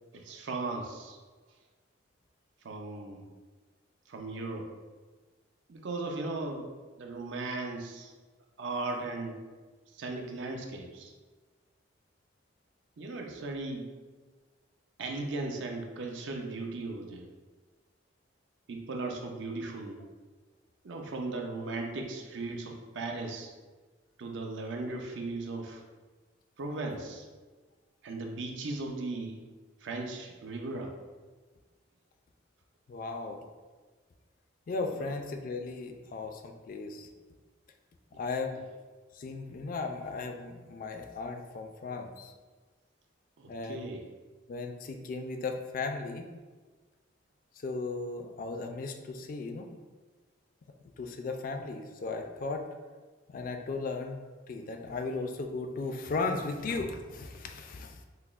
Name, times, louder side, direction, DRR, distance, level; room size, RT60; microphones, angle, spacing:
voice 1, 0.1-1.2 2.6-3.3 4.1-4.7 5.7-6.6 7.0-8.1 8.6-9.4 9.9-11.1 13.0-13.9 15.0-17.3 18.7-20.0 20.8-23.5 24.2-25.8 26.6-27.3 28.0-29.4 29.8-30.9 35.0-35.1 43.4-44.0, right 2 dB, 70° right, 3 dB, 0.5 m, -37 dB
voice 2, 32.9-33.4 34.7-37.1 38.2-38.6 39.1-42.3 43.5-43.9 44.5-46.3 47.6-49.7 51.0-52.7 53.3-54.2 54.5-58.0, left 3 dB, 45° left, 5 dB, 0.3 m, -36 dB
5.6 x 2.0 x 2.4 m, 1.3 s
head